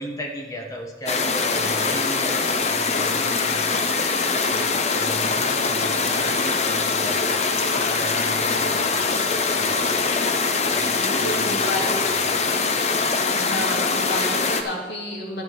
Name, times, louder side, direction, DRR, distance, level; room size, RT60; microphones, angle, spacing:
voice 1, 0.0-3.7 4.5-10.0 10.7-12.2, equal, 20° left, 1 dB, 1.4 m, -37 dB
sound 1, 1.1-14.6, left 4 dB, 40° left, 0.7 m, -23 dB
voice 2, 10.9-12.0 13.3-15.4, left 1 dB, 75° left, -3 dB, 2.4 m, -30 dB
10.0 x 9.6 x 4.7 m, 1.4 s
head